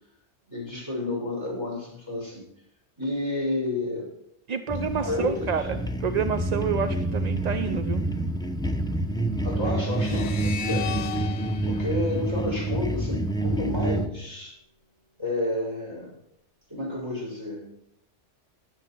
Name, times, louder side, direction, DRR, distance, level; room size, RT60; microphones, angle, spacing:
voice 1, 0.5-2.5 3.0-4.1 5.0-5.5 9.4-10.9 11.6-14.6 15.2-16.2 16.7-17.6, left 2 dB, 20° right, -1 dB, 6.3 m, -30 dB
voice 2, 4.5-8.0, right 6 dB, 45° right, 10 dB, 0.6 m, -28 dB
sound 1, 4.7-14.1, right 1 dB, 5° left, 0.8 m, -28 dB
sound 2, 9.9-13.2, left 9 dB, 70° left, 1.0 m, -37 dB
20.5 x 7.7 x 4.5 m, 0.73 s
omnidirectional pair, 1.2 m